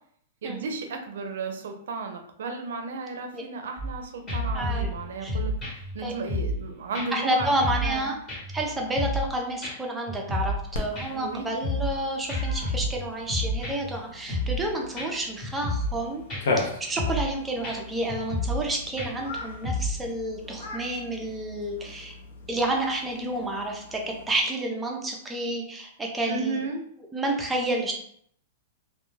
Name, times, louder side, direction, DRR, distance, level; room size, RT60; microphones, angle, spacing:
voice 1, 0.4-7.5 7.8-8.2 11.1-11.5 26.3-26.8, right 4 dB, 80° right, 5 dB, 0.5 m, -34 dB
sound 1, 3.8-4.0 4.3-6.7 6.9-7.1 7.4-8.0 8.3-9.3 9.6-9.7 10.1-10.7 11.0-12.0 12.3-14.0 14.3-14.7 15.0-15.1 15.4-16.0 16.3-16.6 17.0-17.3 17.6-17.8 18.1-18.7 19.0-20.0, left 1 dB, 25° left, 0.9 m, -30 dB
voice 2, 4.5-4.9 5.2-5.3 6.0-6.1 7.1-8.2 8.5-16.2 16.6-22.1 22.5-26.6 27.1-27.9, right 1 dB, 10° right, 0 dB, 0.5 m, -30 dB
Cat, 10.7-24.4, left 3 dB, 75° left, 0.5 m, -38 dB
2.2 x 2.2 x 3.1 m, 0.65 s
supercardioid pair, 150°, 0 cm